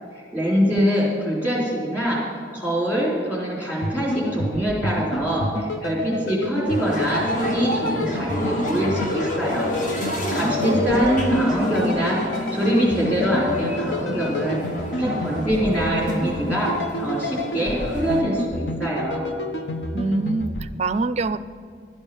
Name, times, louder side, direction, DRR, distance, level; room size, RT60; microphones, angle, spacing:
voice 1, 0.1-9.7 10.3-14.6 15.0-16.7 17.0-19.2, equal, 10° left, -5 dB, 3.6 m, -24 dB
sound 1, 3.8-20.7, left 1 dB, 75° left, 1.0 m, -30 dB
sound 2, 6.6-18.2, left 1 dB, 45° left, 1.4 m, -28 dB
voice 2, 10.4-11.0 19.9-21.4, right 3 dB, 35° right, 12 dB, 0.4 m, -26 dB
12.0 x 8.9 x 7.0 m, 2.3 s
head